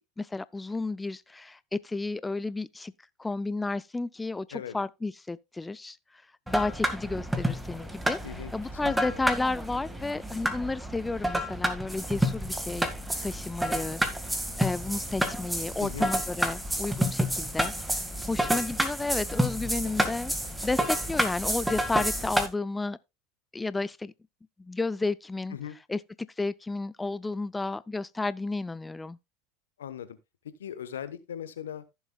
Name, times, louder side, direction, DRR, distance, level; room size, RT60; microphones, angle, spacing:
voice 1, 0.2-2.9 3.2-6.0 6.5-12.9 13.2-14.0 14.6-20.3 20.6-23.0 23.5-24.1 24.6-25.6 25.9-26.0 26.4-29.2, left 3 dB, 15° left, 0.4 m, -32 dB
sound 1, 6.5-22.5, right 1 dB, 5° right, 1.8 m, -30 dB
voice 2, 8.2-9.2 15.8-16.1 19.8-20.0 25.5-25.8 29.8-30.2 30.6-31.8, left 9 dB, 85° left, 1.0 m, -39 dB
15.0 x 7.1 x 2.3 m
hypercardioid pair, 85°, 0 cm